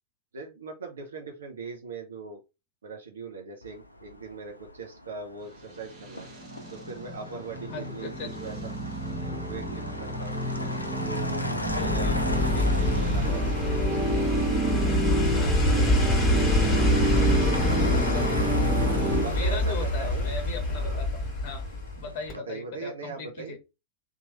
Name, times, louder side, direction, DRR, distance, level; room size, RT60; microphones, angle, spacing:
voice 1, 0.3-2.4 2.8-6.3 6.7-8.1 8.4-8.7 9.2-10.4 11.0-11.5 11.8-15.4 15.7-16.1 16.7-17.8 19.2-20.3 20.7-21.0 22.3-23.6, right 4 dB, 70° right, 2 dB, 0.6 m, -41 dB
Motor vehicle (road), 3.6-22.4, left 1 dB, 85° left, 0.4 m, -38 dB
sound 1, 5.9-19.2, right 1 dB, 35° right, 1.3 m, -30 dB
voice 2, 7.7-8.4 11.7-12.2 12.5-12.8 15.3-15.7 17.7-18.5 18.9-21.6 22.0-23.6, left 4 dB, 40° left, 5 dB, 0.7 m, -39 dB
sound 2, 11.7-22.0 22.3-22.4, left 1 dB, 20° left, 1.6 m, -26 dB
2.9 x 2.3 x 2.8 m, 0.26 s
figure-of-eight pair, 90°, 0 cm